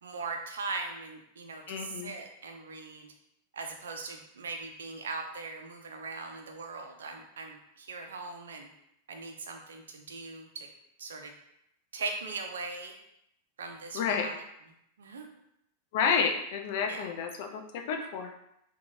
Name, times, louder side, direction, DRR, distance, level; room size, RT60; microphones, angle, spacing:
voice 1, 0.0-3.1 3.5-8.7 9.1-10.7 11.0-11.3 11.9-12.9 13.6-14.4 15.0-15.3 16.9-17.1, right 4 dB, 65° right, 4 dB, 0.4 m, -40 dB
voice 2, 1.7-2.1 13.9-14.3 15.9-18.3, left 6 dB, 50° left, 4 dB, 0.3 m, -30 dB
2.8 x 2.2 x 2.6 m, 0.79 s
figure-of-eight pair, 90°, 0 cm